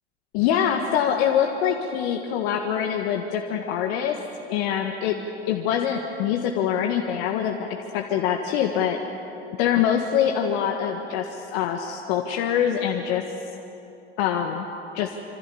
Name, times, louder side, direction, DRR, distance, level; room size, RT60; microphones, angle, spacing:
voice 1, 0.3-4.2 4.5-5.2 5.5-9.0 9.6-13.2 14.2-14.7 14.9-15.1, left 9 dB, 60° left, 3 dB, 1.7 m, -24 dB
26.0 x 26.0 x 7.2 m, 2.9 s
figure-of-eight pair, 75°, 32 cm